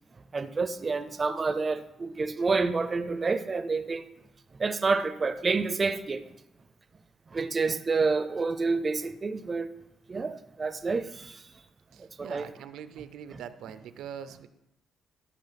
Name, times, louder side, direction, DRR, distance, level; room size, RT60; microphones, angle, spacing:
voice 1, 0.3-4.1 4.6-6.2 7.3-9.7 10.1-11.4 12.2-12.5 13.3-13.4, right 4 dB, 25° right, 0.4 m, -28 dB
voice 2, 11.9-14.5, right 8 dB, 85° right, 0.6 m, -43 dB
12.5 x 5.6 x 5.7 m
cardioid pair, 165°, 0 cm